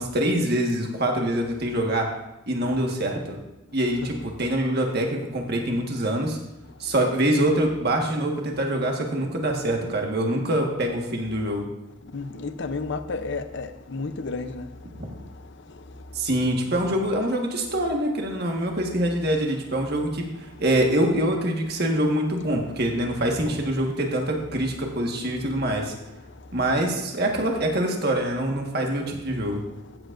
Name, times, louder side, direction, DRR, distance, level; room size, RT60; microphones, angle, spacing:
voice 1, 0.0-2.1 2.5-3.4 3.7-6.4 6.8-11.7 16.1-20.3 20.6-25.9 26.5-29.6, right 1 dB, 50° right, 1 dB, 1.5 m, -25 dB
voice 2, 12.0-16.3 27.0-27.1, left 3 dB, 60° left, 10 dB, 0.6 m, -33 dB
15.0 x 7.9 x 2.6 m, 0.97 s
head